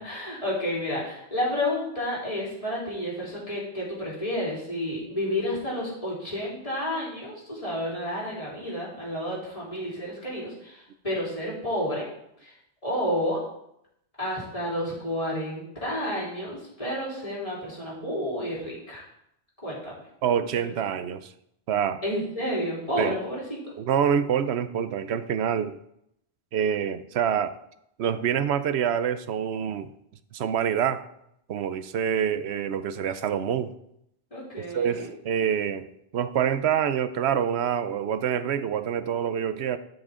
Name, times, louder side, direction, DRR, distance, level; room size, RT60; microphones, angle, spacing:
voice 1, 0.0-12.0 12.4-12.5 12.8-13.4 14.2-19.0 19.6-19.9 22.0-23.6 34.3-35.1, left 1 dB, 35° left, -6 dB, 3.7 m, -30 dB
voice 2, 20.2-21.3 21.7-22.0 23.0-23.1 23.8-25.8 26.5-27.6 28.0-29.9 30.3-31.0 31.5-33.7 34.6-39.8, right 8 dB, 85° right, 12 dB, 0.9 m, -26 dB
13.0 x 6.3 x 3.7 m, 0.77 s
omnidirectional pair, 1.1 m